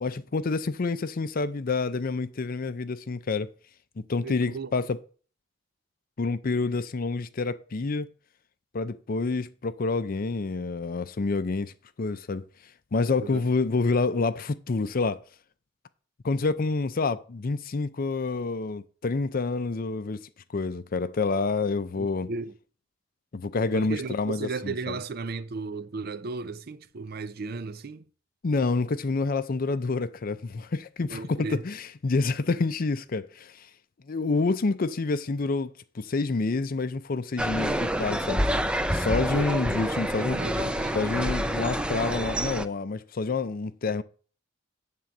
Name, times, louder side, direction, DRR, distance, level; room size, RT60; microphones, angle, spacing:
voice 1, 0.0-3.5 4.1-5.0 6.2-8.1 8.7-12.4 12.9-15.2 16.2-22.3 23.3-24.7 28.4-33.7 34.1-38.5 38.9-40.4 40.9-44.0, left 3 dB, 50° left, 0.5 m, -28 dB
voice 2, 4.2-4.7 13.2-13.5 22.0-22.6 23.7-28.1 31.1-31.6 39.3-39.6 40.3-41.3, right 4 dB, 55° right, 0.5 m, -35 dB
sound 1, 37.4-42.7, equal, 5° right, 0.5 m, -28 dB
9.1 x 3.8 x 7.1 m
head